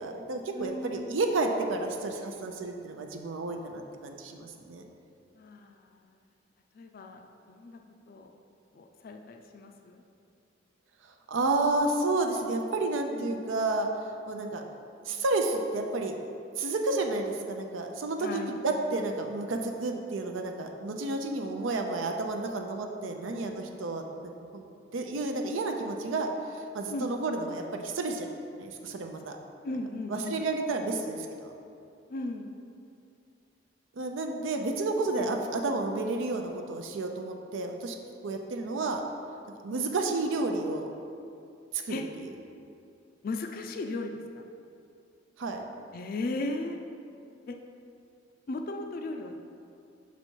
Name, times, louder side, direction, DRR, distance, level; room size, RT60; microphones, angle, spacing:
voice 1, 0.0-4.8 11.3-13.9 14.3-14.6 15.1-16.1 16.6-24.6 24.9-28.3 28.6-29.4 30.1-31.5 34.0-38.0 38.2-39.0 39.6-40.9 41.7-42.3 45.4-45.7, right 2 dB, 80° right, 3 dB, 0.5 m, -31 dB
voice 2, 0.5-1.2 5.4-5.8 6.7-7.2 7.5-7.8 8.1-8.3 8.7-10.0 13.1-13.3 18.2-18.5 26.9-27.1 29.6-30.4 32.1-32.5 35.1-35.4 39.7-39.8 41.9-42.0 43.2-44.4 45.9-46.8 47.5-47.6 48.5-49.3, left 2 dB, 50° left, 4 dB, 0.4 m, -36 dB
5.6 x 4.1 x 4.5 m, 2.5 s
head